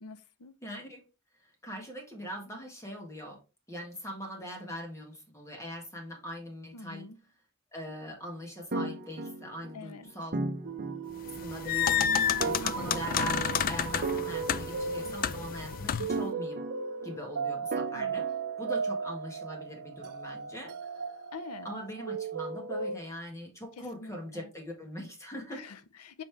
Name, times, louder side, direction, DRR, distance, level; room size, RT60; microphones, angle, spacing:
voice 1, 0.0-0.5 6.7-7.2 9.7-10.1 12.6-12.9 18.0-18.2 21.3-21.7 23.8-24.5 25.5-26.2, left 4 dB, 90° left, 0.6 m, -46 dB
voice 2, 0.6-1.0 1.6-3.4 3.7-7.1 7.7-10.4 11.4-16.6 17.0-21.0 21.6-25.7, equal, 15° left, 1.7 m, -42 dB
sound 1, 8.7-9.9 10.3-11.5 12.4-13.6 14.0-15.4 16.1-17.3 17.7-19.1, right 2 dB, 40° right, 0.8 m, -37 dB
sound 2, 10.6-23.0, right 5 dB, 75° right, 0.8 m, -36 dB
sound 3, 11.3-16.2, left 9 dB, 40° left, 0.3 m, -30 dB
5.4 x 5.2 x 3.3 m
head